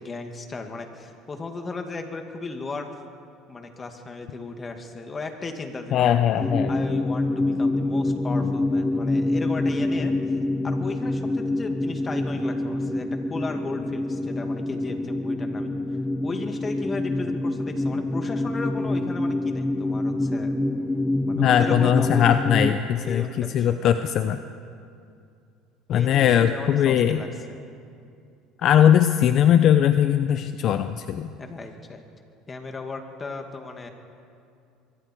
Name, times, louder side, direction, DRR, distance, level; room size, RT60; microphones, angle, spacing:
voice 1, 0.0-2.9 3.5-6.2 6.7-10.1 10.6-15.7 16.2-20.5 21.3-22.4 23.0-23.8 25.9-27.6 31.4-32.0 32.5-33.9, left 3 dB, 25° left, 5 dB, 2.3 m, -35 dB
voice 2, 5.9-6.7 21.3-24.4 25.9-27.2 28.6-31.3, left 10 dB, 50° left, 10 dB, 0.8 m, -20 dB
sound 1, 6.4-22.8, left 2 dB, 10° left, 0.9 m, -26 dB
25.0 x 22.5 x 4.7 m, 2.4 s
supercardioid pair, 110°, 0 cm